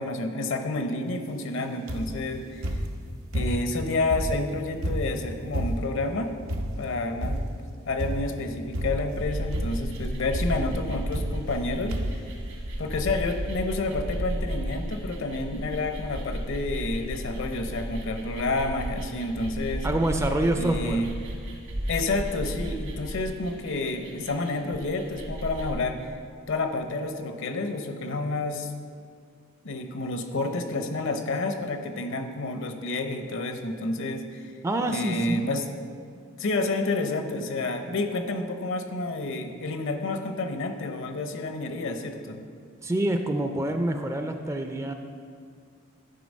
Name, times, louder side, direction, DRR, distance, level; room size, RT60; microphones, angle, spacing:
voice 1, 0.0-2.8 3.3-6.3 6.8-7.4 7.9-12.0 12.8-19.9 20.6-21.1 21.9-26.2 26.5-28.7 29.6-34.5 34.9-35.7 36.4-42.4, left 2 dB, 65° left, 7 dB, 0.7 m, -29 dB
sound 1, 1.9-2.3 2.6-3.8 4.1-6.0 6.5-6.9 7.2-7.6 8.0-8.4 8.7-9.2 9.5-10.0 10.3-10.6 11.1-11.6 11.9-12.3 13.0-13.1 13.3-13.4, equal, 80° right, 0.8 m, -30 dB
sound 2, 9.2-25.7, equal, 65° right, 1.4 m, -34 dB
voice 2, 19.8-21.0 34.6-35.5 42.8-44.9, right 1 dB, 15° right, 6 dB, 0.4 m, -26 dB
10.5 x 3.8 x 5.2 m, 2.1 s
head